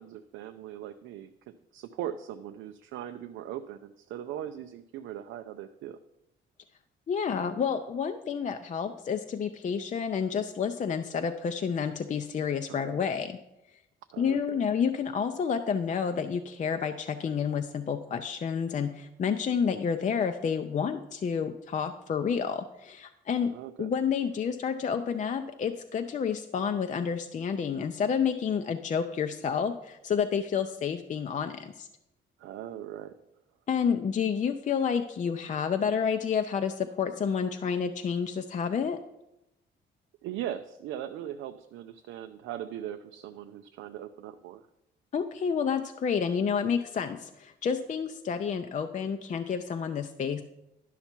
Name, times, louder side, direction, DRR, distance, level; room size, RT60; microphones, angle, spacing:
voice 1, 0.0-6.0 12.7-13.0 14.1-14.6 23.5-23.9 32.4-33.1 40.2-44.6, right 11 dB, 90° right, 7 dB, 0.4 m, -40 dB
voice 2, 7.1-13.4 14.2-23.5 23.8-31.9 33.7-39.0 45.1-50.4, left 6 dB, 40° left, 7 dB, 0.5 m, -29 dB
11.0 x 5.7 x 4.4 m, 0.89 s
cardioid pair, 90°, 20 cm